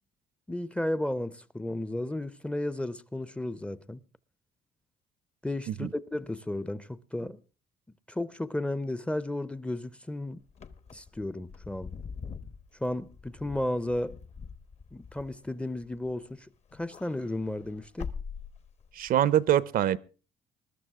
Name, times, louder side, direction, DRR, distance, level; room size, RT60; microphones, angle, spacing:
voice 1, 0.5-4.0 5.4-7.4 8.1-10.4 10.9-11.9 12.8-14.2 14.9-16.5 16.7-18.1, left 1 dB, 5° left, 0.6 m, -33 dB
Wind / Car, 10.5-16.3 16.7-19.1, left 5 dB, 40° left, 1.0 m, -43 dB
voice 2, 18.9-20.0, right 11 dB, 55° right, 0.6 m, -24 dB
20.5 x 12.0 x 3.6 m
cardioid pair, 110°, 17 cm